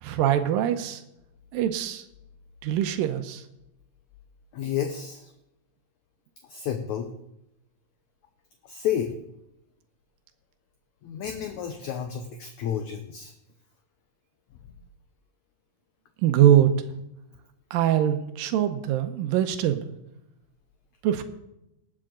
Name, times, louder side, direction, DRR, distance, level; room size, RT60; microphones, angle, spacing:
voice 1, 0.0-1.0 1.5-2.0 2.6-3.4 16.2-16.7 17.7-19.9 21.0-21.2, right 11 dB, 85° right, 8 dB, 2.5 m, -23 dB
voice 2, 4.5-5.3 6.5-7.1 8.6-9.1 11.0-13.3, left 9 dB, 70° left, 6 dB, 1.9 m, -31 dB
19.5 x 7.6 x 3.8 m, 0.85 s
omnidirectional pair, 4.0 m